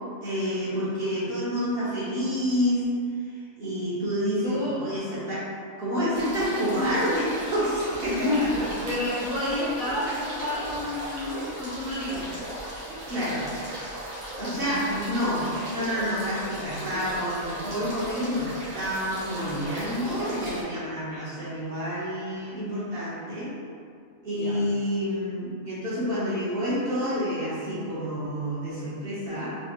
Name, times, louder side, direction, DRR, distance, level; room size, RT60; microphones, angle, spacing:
voice 1, 0.2-2.8 3.3-5.5 5.8-8.7 13.1-13.5 14.4-23.5 24.2-29.6, equal, 50° right, -9 dB, 0.8 m, -28 dB
voice 2, 4.4-4.8 6.8-7.0 7.7-7.8 8.1-8.5 8.8-12.3 14.4-14.9 19.3-19.6 24.3-24.6, left 2 dB, 60° left, -10 dB, 0.5 m, -30 dB
sound 1, 6.1-20.6, right 1 dB, 85° right, 1.4 m, -36 dB
3.2 x 2.3 x 2.9 m, 2.3 s
omnidirectional pair, 1.4 m